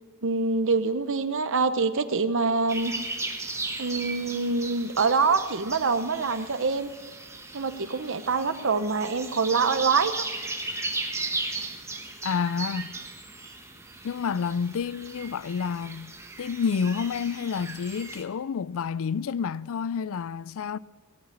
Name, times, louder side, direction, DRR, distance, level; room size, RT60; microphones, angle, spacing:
voice 1, 0.2-2.9 3.8-6.9 7.5-10.2, right 4 dB, 60° right, 0.9 m, -25 dB
sound 1, 2.7-18.2, right 3 dB, 15° right, 1.5 m, -36 dB
voice 2, 12.2-12.9 14.0-16.1 16.4-20.8, left 6 dB, 70° left, 0.4 m, -29 dB
18.5 x 8.7 x 8.5 m
head